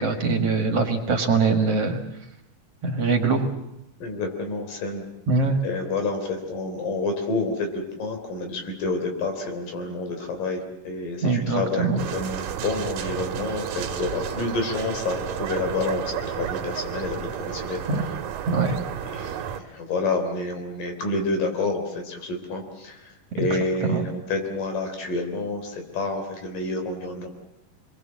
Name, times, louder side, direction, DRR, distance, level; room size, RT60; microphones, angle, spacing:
voice 1, 0.0-2.0 2.8-3.5 5.3-5.6 11.2-12.0 17.9-18.0 18.5-18.8 19.2-19.4 23.4-24.1, right 4 dB, 50° right, 5 dB, 2.5 m, -23 dB
voice 2, 4.0-5.0 5.6-17.8 19.1-23.1 23.3-27.3, left 3 dB, 75° left, 5 dB, 5.1 m, -29 dB
sound 1, 12.0-19.6, right 9 dB, 80° right, 3.0 m, -32 dB
27.5 x 22.0 x 7.5 m, 0.86 s
omnidirectional pair, 3.9 m